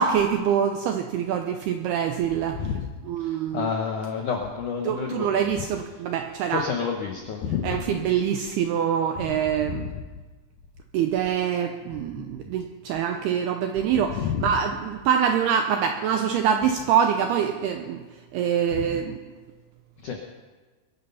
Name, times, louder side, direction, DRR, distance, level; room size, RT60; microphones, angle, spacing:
voice 1, 0.0-2.6 3.0-3.7 4.8-6.7 7.6-9.9 10.9-18.0 18.3-19.2, right 8 dB, 85° right, 5 dB, 2.3 m, -25 dB
voice 2, 3.5-5.3 6.5-8.0 9.7-9.9 14.2-14.4 18.7-18.8 20.0-20.2, left 6 dB, 90° left, 2 dB, 1.7 m, -29 dB
22.0 x 11.0 x 5.7 m, 1.3 s
omnidirectional pair, 5.5 m